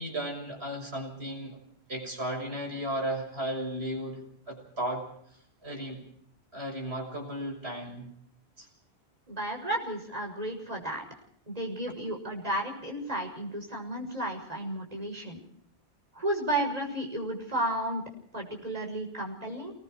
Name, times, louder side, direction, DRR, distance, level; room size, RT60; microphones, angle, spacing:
voice 1, 0.0-1.6 1.9-5.0 5.6-6.0 6.5-8.1 8.6-8.7, right 1 dB, 70° right, 2 dB, 7.0 m, -35 dB
voice 2, 9.3-11.0 11.5-15.4 16.1-18.0 18.3-19.7, right 1 dB, 35° right, 1 dB, 6.7 m, -33 dB
28.5 x 21.0 x 4.7 m, 0.65 s
omnidirectional pair, 1.1 m